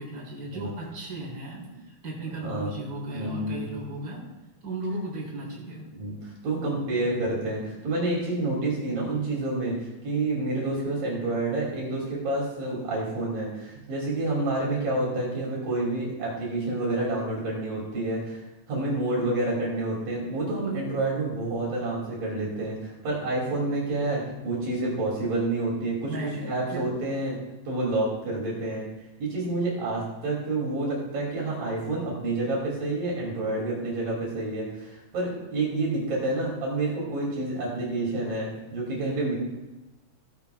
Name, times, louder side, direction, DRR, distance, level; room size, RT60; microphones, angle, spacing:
voice 1, 0.0-4.2 4.6-5.9 26.1-26.8, right 2 dB, 25° right, -5 dB, 4.2 m, -36 dB
voice 2, 2.3-2.8 3.1-3.8 5.9-18.4 18.7-27.4 27.7-28.9 29.2-39.3, right 2 dB, 65° right, -4 dB, 4.1 m, -29 dB
15.5 x 11.5 x 2.3 m, 1.1 s
omnidirectional pair, 4.2 m